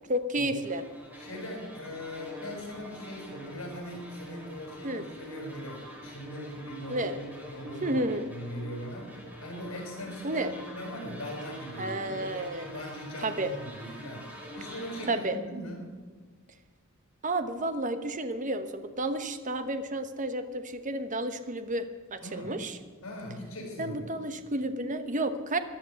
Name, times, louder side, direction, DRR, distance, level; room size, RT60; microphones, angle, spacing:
voice 1, 0.1-0.8 4.8-5.0 6.9-7.1 7.8-8.3 10.2-10.5 11.8-12.7 13.2-13.5 15.1-15.4 17.2-22.8 23.8-25.6, right 1 dB, 35° right, 9 dB, 1.1 m, -31 dB
sound 1, 0.6-15.2, equal, 10° right, 3.6 m, -46 dB
voice 2, 1.2-7.2 7.5-9.1 9.4-14.3 14.5-15.9 22.2-22.6 23.0-24.1, equal, 70° left, -1 dB, 6.3 m, -40 dB
15.5 x 11.0 x 7.1 m, 1.5 s
head